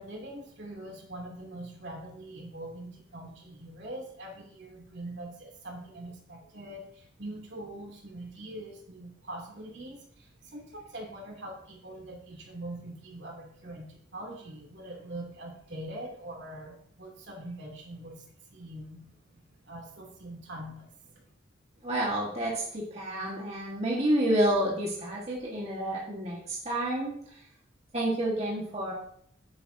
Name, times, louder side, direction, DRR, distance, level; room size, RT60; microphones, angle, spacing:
voice 1, 0.0-19.0 19.3-21.2, right 1 dB, 60° right, -1 dB, 3.2 m, -43 dB
voice 2, 21.8-27.1 27.9-28.9, right 1 dB, 35° right, -5 dB, 1.9 m, -29 dB
10.0 x 10.0 x 2.9 m, 0.66 s
head